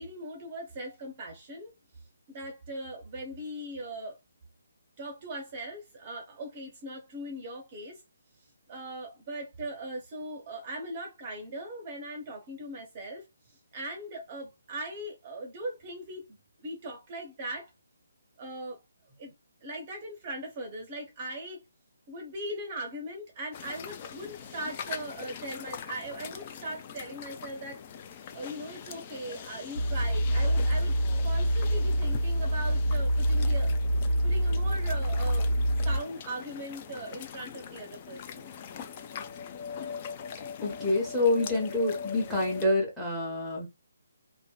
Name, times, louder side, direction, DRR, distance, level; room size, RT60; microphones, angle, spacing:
voice 1, 0.0-1.7 2.3-4.2 5.0-8.0 8.7-13.3 13.7-17.7 18.4-18.8 19.2-19.3 19.6-21.6 22.1-27.8 28.3-30.9 31.2-33.7 34.2-35.5 35.8-38.5, right 1 dB, 30° right, 0.6 m, -39 dB
sound 1, 23.5-42.6, left 7 dB, 30° left, 0.3 m, -42 dB
sound 2, 29.8-36.0, equal, 80° right, 0.5 m, -26 dB
voice 2, 40.6-43.7, left 2 dB, 5° left, 0.8 m, -27 dB
2.6 x 2.1 x 2.2 m
figure-of-eight pair, 140°, 0 cm